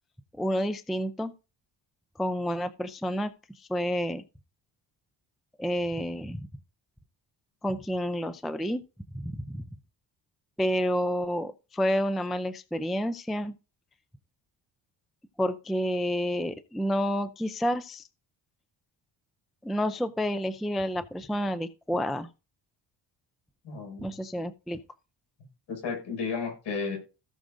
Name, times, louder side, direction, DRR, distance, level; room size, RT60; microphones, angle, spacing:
voice 1, 0.4-1.3 2.2-3.3 3.6-4.2 5.6-6.5 7.6-8.8 9.1-9.7 10.6-13.5 15.4-18.1 19.6-22.3 24.0-24.8, equal, ahead, 0.4 m, -29 dB
voice 2, 23.6-24.1 25.7-27.0, left 5 dB, 75° left, 6.2 m, -33 dB
17.0 x 6.2 x 2.6 m
cardioid pair, 160°, 44 cm